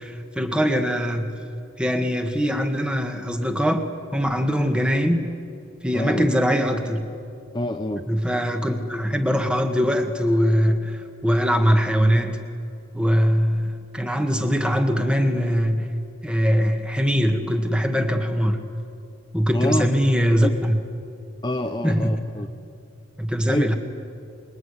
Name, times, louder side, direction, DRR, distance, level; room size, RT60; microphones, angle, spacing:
voice 1, 0.0-1.3 1.8-3.9 4.1-5.3 5.8-7.1 8.1-12.4 12.9-15.9 16.2-18.6 19.3-20.8 21.8-22.1 23.2-23.8, equal, 5° right, 5 dB, 1.8 m, -22 dB
voice 2, 5.9-6.2 7.5-8.0 19.5-19.9 20.4-20.5 21.4-22.5 23.5-23.7, left 1 dB, 20° left, 4 dB, 1.0 m, -26 dB
27.5 x 22.5 x 9.8 m, 2.6 s
head